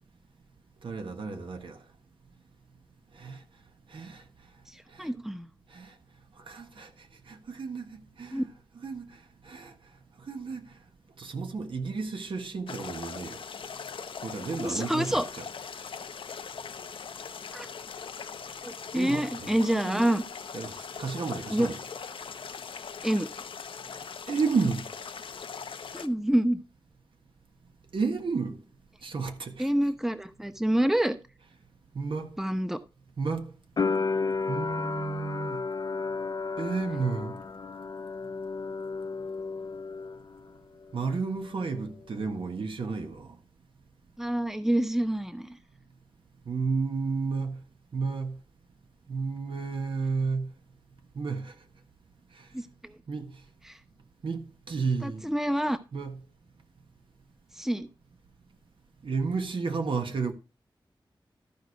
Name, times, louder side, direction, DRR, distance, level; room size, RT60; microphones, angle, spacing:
voice 1, 0.8-1.8 3.2-3.4 3.9-4.2 4.9-5.1 5.7-5.9 6.5-6.9 7.3-8.5 8.7-9.1 9.4-9.7 10.3-10.6 11.2-13.4 14.2-15.5 18.9-20.0 20.5-21.8 24.3-24.9 27.9-28.6 29.0-29.7 31.9-32.4 33.2-33.6 34.5-35.7 36.6-37.4 40.9-43.4 46.5-47.6 47.9-48.4 49.1-50.5 51.1-51.5 53.1-53.4 54.2-55.3 55.9-56.2 59.0-60.3, right 4 dB, 80° right, 1.5 m, -32 dB
voice 2, 4.7-5.5 8.3-8.4 14.6-15.2 17.5-17.7 18.6-20.2 21.5-21.7 23.0-23.3 25.9-26.6 29.6-31.2 32.4-32.8 44.2-45.6 52.5-52.7 53.7-53.8 55.0-55.8 57.5-57.9, right 1 dB, 5° right, 0.9 m, -27 dB
sound 1, 12.7-26.1, left 6 dB, 90° left, 0.7 m, -41 dB
sound 2, 33.8-40.6 40.8-41.7, left 4 dB, 50° left, 0.5 m, -33 dB
13.5 x 4.9 x 4.7 m
wide cardioid pair, 75°, 9 cm